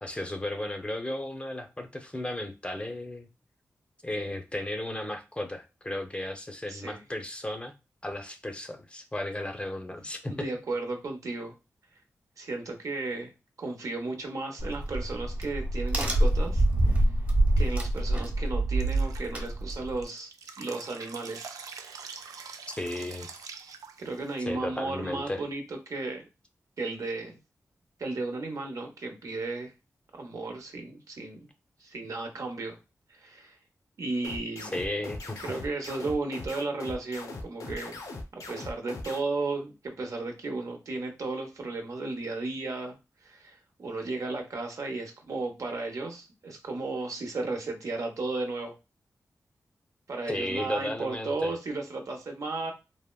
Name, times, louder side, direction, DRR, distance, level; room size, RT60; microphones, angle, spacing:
voice 1, 0.0-3.3 4.0-7.7 8.0-10.5 22.8-23.4 24.5-25.4 34.6-35.4 50.3-51.5, left 1 dB, 20° left, 5 dB, 0.6 m, -34 dB
voice 2, 6.7-7.0 10.3-11.5 12.4-13.3 13.6-16.6 17.6-20.3 20.6-21.5 22.0-22.6 24.0-26.3 26.8-27.4 28.0-29.7 30.1-31.4 31.8-32.8 33.2-33.6 34.0-34.7 35.4-38.0 38.3-43.0 43.2-48.7 50.1-52.7, right 3 dB, 70° right, 4 dB, 0.8 m, -34 dB
Crack, 14.6-20.0, right 1 dB, 25° right, 1.0 m, -26 dB
Drip, 18.8-24.4, right 5 dB, 85° right, 0.3 m, -45 dB
sound 1, 34.2-39.2, left 2 dB, 75° left, 0.7 m, -40 dB
3.4 x 2.1 x 2.2 m, 0.27 s
cardioid pair, 60°, 6 cm